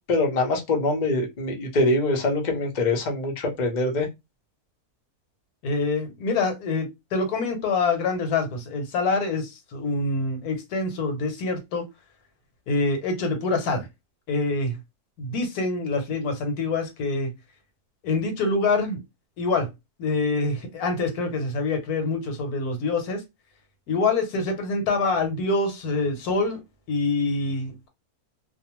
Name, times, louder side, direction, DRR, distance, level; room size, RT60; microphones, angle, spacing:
voice 1, 0.1-4.1, left 2 dB, 45° left, 0.6 m, -24 dB
voice 2, 5.6-11.8 12.7-13.9 14.3-14.8 15.2-17.3 18.0-19.0 19.4-19.7 20.0-23.2 23.9-26.6 26.9-27.9, left 3 dB, 75° left, 1.3 m, -25 dB
2.6 x 2.1 x 2.9 m
omnidirectional pair, 1.6 m